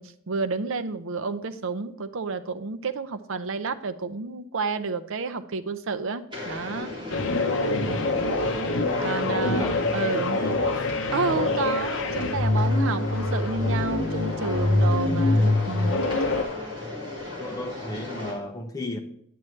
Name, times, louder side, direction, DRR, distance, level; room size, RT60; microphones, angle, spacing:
voice 1, 0.0-7.0 9.0-10.4 11.1-16.0, right 4 dB, 65° right, 0.6 m, -30 dB
sound 1, 6.3-18.3, left 2 dB, 20° right, 2.9 m, -36 dB
sound 2, 7.1-16.4, left 2 dB, 60° left, 0.8 m, -25 dB
voice 2, 9.3-10.9 16.8-17.0 17.4-19.0, left 1 dB, 15° left, 0.9 m, -36 dB
9.3 x 8.8 x 3.2 m
head